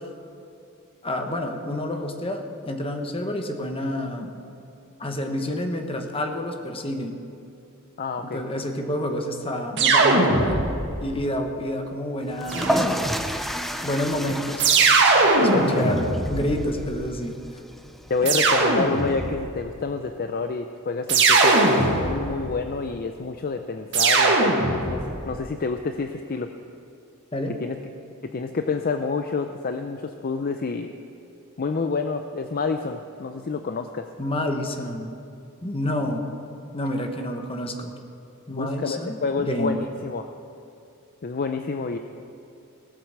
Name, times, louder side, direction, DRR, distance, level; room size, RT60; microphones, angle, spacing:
voice 1, 1.0-4.3 5.0-7.2 8.2-10.7 11.0-12.9 13.8-14.7 15.4-17.4 27.3-27.5 34.2-35.1 35.6-36.2 36.7-37.9 38.5-39.8, left 1 dB, 25° left, 4 dB, 1.2 m, -29 dB
voice 2, 8.0-8.4 15.5-15.8 18.1-26.5 27.6-27.8 28.2-30.9 31.6-34.1 38.5-40.3 41.2-42.0, left 4 dB, 45° left, 7 dB, 0.5 m, -28 dB
sound 1, 9.8-11.0 12.5-13.3 14.6-16.9 18.2-19.4 21.1-22.4 23.9-25.1, right 3 dB, 55° right, 1.7 m, -20 dB
sound 2, 12.3-19.1, equal, ahead, 0.5 m, -31 dB
18.0 x 7.9 x 6.7 m, 2.6 s
head